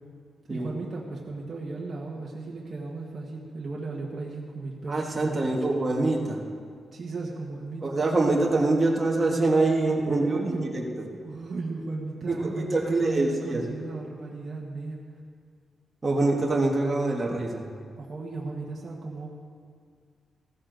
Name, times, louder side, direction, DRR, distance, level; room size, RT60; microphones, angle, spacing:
voice 1, 0.5-5.6 6.9-8.0 10.2-10.7 11.2-15.0 18.0-19.3, right 3 dB, 40° right, -3 dB, 1.5 m, -35 dB
voice 2, 4.9-6.4 7.8-10.8 12.3-13.7 16.0-17.6, right 2 dB, 25° right, -1 dB, 1.5 m, -25 dB
15.5 x 13.0 x 4.0 m, 2.1 s
cardioid pair, 125°, 0 cm